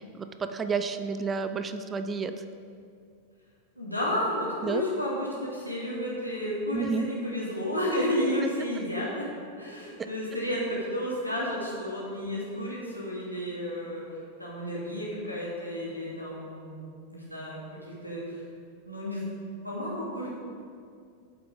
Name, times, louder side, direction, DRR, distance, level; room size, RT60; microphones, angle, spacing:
voice 1, 0.0-2.4 4.6-4.8 6.7-7.1 10.0-10.1, right 5 dB, 20° right, 9 dB, 0.5 m, -31 dB
voice 2, 3.8-9.2 9.6-14.0 14.4-16.8 17.1-17.6 18.0-18.4 18.8-19.2 19.6-20.3, left 1 dB, 90° left, -6 dB, 2.6 m, -31 dB
8.5 x 8.1 x 5.1 m, 2.3 s
figure-of-eight pair, 90°, 0 cm